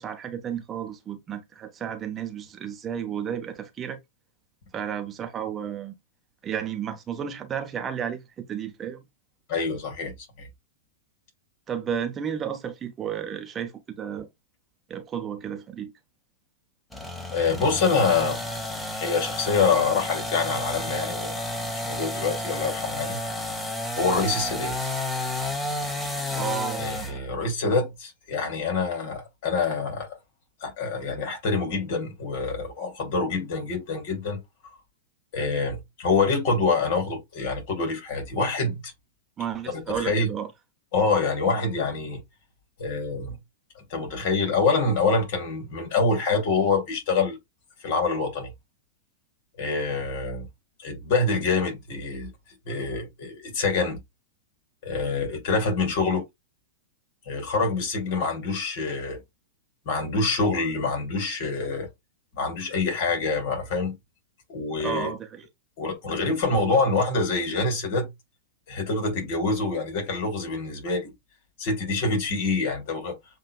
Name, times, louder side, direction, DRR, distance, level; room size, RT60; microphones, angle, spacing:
voice 1, 0.0-4.0 4.7-5.9 6.4-9.0 11.7-14.3 14.9-15.9 26.3-26.8 39.4-40.5 56.0-56.1 64.8-65.4, right 8 dB, 25° right, 0.9 m, -32 dB
voice 2, 9.5-10.1 17.3-18.4 18.9-21.4 21.9-23.2 24.0-24.7 26.8-30.2 30.6-34.4 35.3-38.9 39.9-40.3 40.9-42.2 42.8-43.4 43.9-47.4 47.8-48.5 49.6-50.5 50.8-52.3 52.7-54.0 54.8-56.2 57.3-59.2 59.9-61.9 62.4-64.0 64.5-65.1 65.8-68.1 68.7-71.1 71.6-73.2, left 4 dB, 50° left, 2.6 m, -26 dB
sound 1, 16.9-27.2, left 1 dB, 10° left, 1.2 m, -31 dB
7.4 x 2.8 x 2.2 m
figure-of-eight pair, 100°, 0 cm